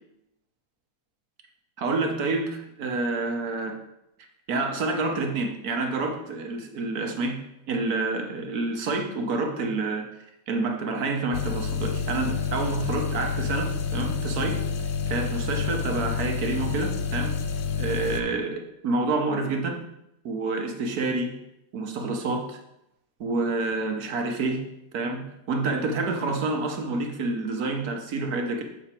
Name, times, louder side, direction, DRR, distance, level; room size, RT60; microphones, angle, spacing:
voice 1, 1.8-3.7 4.5-7.4 7.7-10.1 10.5-14.6 15.1-17.3 17.8-19.8 20.2-21.3 21.7-22.6 23.2-24.6 24.9-28.6, right 3 dB, 55° right, 4 dB, 1.3 m, -28 dB
sound 1, 11.3-18.2, left 6 dB, 65° left, 1.0 m, -28 dB
7.1 x 5.9 x 4.4 m, 0.84 s
omnidirectional pair, 2.1 m